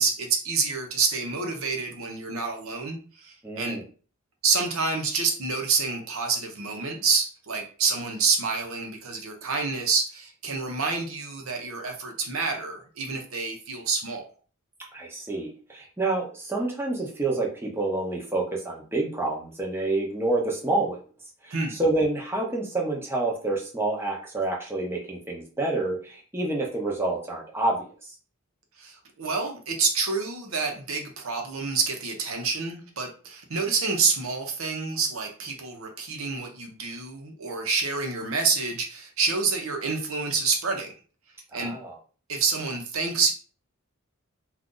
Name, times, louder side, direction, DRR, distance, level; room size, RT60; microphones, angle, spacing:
voice 1, 0.0-3.8 4.4-14.3 21.5-21.8 28.8-40.9 41.5-41.7 42.3-43.3, right 4 dB, 75° right, 3 dB, 0.8 m, -28 dB
voice 2, 3.4-3.8 14.9-21.0 21.4-27.9 41.5-41.9, right 2 dB, 10° right, -2 dB, 0.7 m, -28 dB
2.6 x 2.4 x 3.7 m, 0.39 s
head